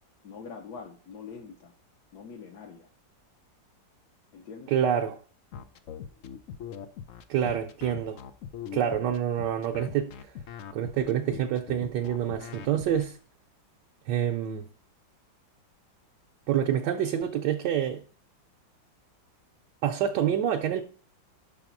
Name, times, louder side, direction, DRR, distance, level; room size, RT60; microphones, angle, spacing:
voice 1, 0.2-1.7 2.1-2.9 4.3-4.7, left 5 dB, 65° left, 1.3 m, -44 dB
voice 2, 4.7-5.2 7.3-8.2 8.7-10.1 10.7-13.2 14.1-14.7 16.5-18.0 19.8-20.8, right 9 dB, 70° right, 1.2 m, -27 dB
sound 1, 5.5-13.1, left 8 dB, 90° left, 0.6 m, -41 dB
5.9 x 4.2 x 5.9 m
omnidirectional pair, 2.0 m